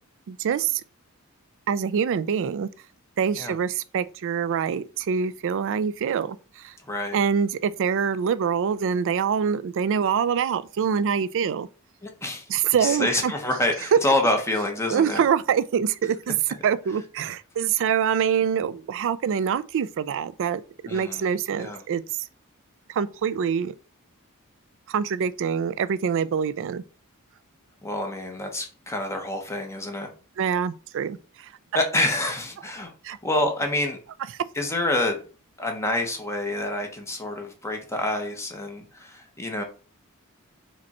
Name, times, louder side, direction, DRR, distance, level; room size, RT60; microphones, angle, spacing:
voice 1, 0.3-0.8 1.7-2.7 3.2-6.7 7.1-11.7 12.5-13.3 14.9-16.3 16.6-22.0 22.9-23.7 24.9-26.8 30.4-31.5 33.0-33.2, right 7 dB, 60° right, 0.3 m, -25 dB
voice 2, 6.8-7.2 12.0-12.5 12.8-15.2 17.2-17.3 20.8-21.3 21.5-21.8 27.8-30.1 31.7-32.9 33.2-34.0 34.5-35.2 35.6-39.6, left 1 dB, 15° left, 0.9 m, -27 dB
5.0 x 2.3 x 4.2 m
head